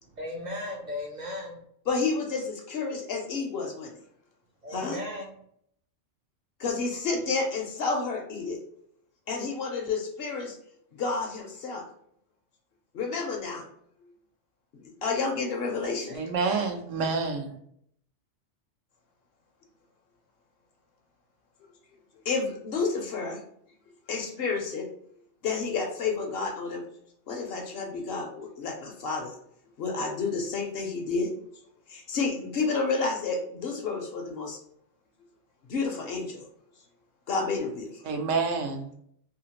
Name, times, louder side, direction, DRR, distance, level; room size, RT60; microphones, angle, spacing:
voice 1, 0.0-1.6 4.6-5.3 16.1-16.7, left 1 dB, 55° right, -1 dB, 0.5 m, -37 dB
voice 2, 1.9-3.9 4.7-5.0 6.6-8.6 9.3-10.6 11.0-11.8 12.9-13.6 15.0-16.2 22.3-23.4 24.1-24.9 25.4-26.8 27.3-29.4 29.8-31.3 31.9-34.6 35.7-36.5 37.3-37.9, left 4 dB, 60° left, 2 dB, 0.7 m, -30 dB
voice 3, 16.1-17.6 38.0-38.9, right 4 dB, 85° right, 3 dB, 1.0 m, -28 dB
2.8 x 2.4 x 2.8 m, 0.68 s
omnidirectional pair, 1.2 m